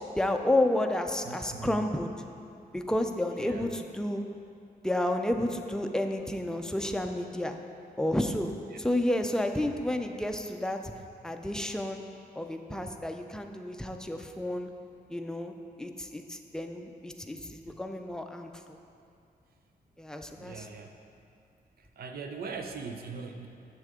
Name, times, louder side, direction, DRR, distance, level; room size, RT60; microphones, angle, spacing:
voice 1, 0.2-2.1 2.7-4.2 4.8-7.6 8.0-8.5 8.8-10.9 11.2-12.0 12.4-14.7 15.1-15.5 15.8-18.5 20.0-20.6, left 1 dB, 5° left, 4 dB, 0.4 m, -30 dB
voice 2, 1.2-1.9 3.4-3.7 8.7-8.9 20.4-21.0 21.8-23.5, right 4 dB, 70° right, 5 dB, 0.6 m, -41 dB
7.6 x 6.3 x 3.6 m, 2.5 s
wide cardioid pair, 110°, 16 cm